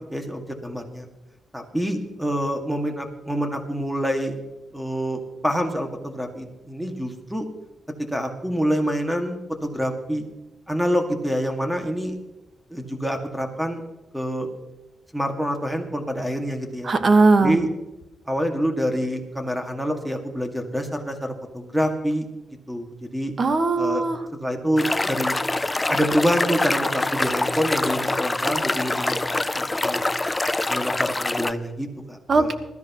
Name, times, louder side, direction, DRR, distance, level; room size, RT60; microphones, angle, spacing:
voice 1, 0.1-1.1 1.5-4.4 4.7-7.5 8.1-10.2 10.7-12.2 12.7-13.8 14.1-14.5 15.1-16.9 17.4-17.7 18.3-22.3 22.7-23.3 23.8-24.0 24.4-25.3 25.9-30.0 30.7-32.5, equal, 5° right, 4 dB, 2.0 m, -26 dB
voice 2, 16.8-17.6 23.4-24.2 32.3-32.5, right 3 dB, 45° right, 8 dB, 1.4 m, -18 dB
sound 1, 24.8-31.5, left 2 dB, 20° left, 0.5 m, -25 dB
20.5 x 13.5 x 3.1 m, 1.0 s
cardioid pair, 95°, 0 cm